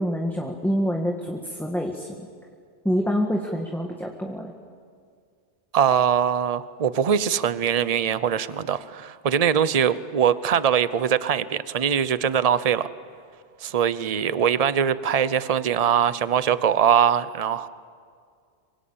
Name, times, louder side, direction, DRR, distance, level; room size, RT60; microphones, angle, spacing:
voice 1, 0.0-2.2 2.8-4.5, equal, ahead, 1 dB, 1.7 m, -26 dB
voice 2, 5.7-12.9 13.6-17.7, right 8 dB, 40° right, 15 dB, 0.8 m, -22 dB
26.5 x 24.5 x 8.8 m, 2.1 s
omnidirectional pair, 1.1 m